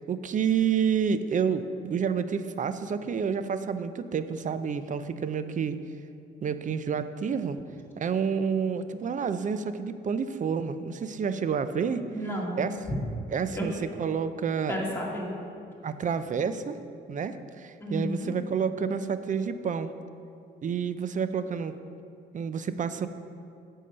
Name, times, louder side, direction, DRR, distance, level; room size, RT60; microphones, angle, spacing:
voice 1, 0.1-5.8 6.4-7.6 8.0-12.0 12.6-12.8 13.3-14.8 15.8-16.8 17.1-19.9 20.6-21.7 22.3-23.1, right 6 dB, 40° right, 12 dB, 0.5 m, -29 dB
voice 2, 12.1-13.0 13.5-13.6 14.7-15.3 17.8-18.3, equal, 10° left, -4 dB, 2.1 m, -32 dB
8.3 x 5.6 x 6.7 m, 2.5 s
cardioid pair, 90°, 20 cm